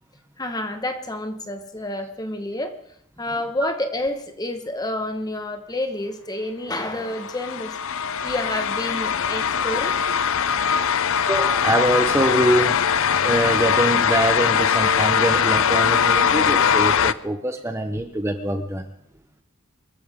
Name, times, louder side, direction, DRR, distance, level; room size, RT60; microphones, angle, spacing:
voice 1, 0.4-2.8 3.2-7.8 8.2-9.9, left 1 dB, 20° left, 6 dB, 1.4 m, -29 dB
sound 1, 7.1-17.1, left 7 dB, 65° left, 0.5 m, -21 dB
voice 2, 11.3-12.8 13.2-18.9, right 1 dB, 10° right, 6 dB, 0.9 m, -23 dB
25.0 x 14.5 x 3.7 m, 0.69 s
head